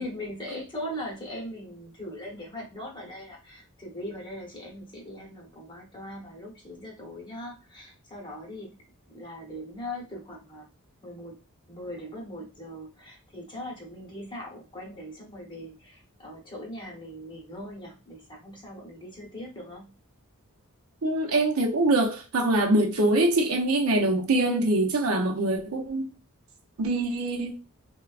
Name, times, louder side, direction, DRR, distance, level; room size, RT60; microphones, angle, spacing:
voice 1, 0.0-8.7 9.1-10.7 11.0-11.4 11.7-19.9, left 1 dB, 20° left, 1.0 m, -40 dB
voice 2, 21.0-26.1 26.8-27.5, right 2 dB, 75° right, 0.6 m, -24 dB
3.3 x 2.2 x 2.4 m
head